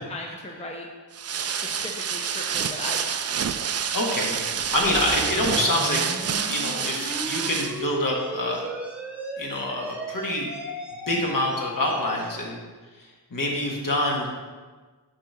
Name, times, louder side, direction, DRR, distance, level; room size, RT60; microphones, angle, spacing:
voice 1, 0.1-0.9 1.4-3.2 11.3-11.4, left 1 dB, 15° left, 0 dB, 0.8 m, -37 dB
sound 1, 1.1-7.8, right 7 dB, 40° right, 0.4 m, -28 dB
voice 2, 3.9-4.4 4.7-8.7 9.4-10.5 11.1-12.6 13.3-14.3, left 1 dB, 55° left, -1 dB, 1.7 m, -26 dB
sound 2, 4.6-12.4, equal, 5° right, 1.2 m, -36 dB
8.5 x 3.0 x 6.2 m, 1.4 s
cardioid pair, 65°, 40 cm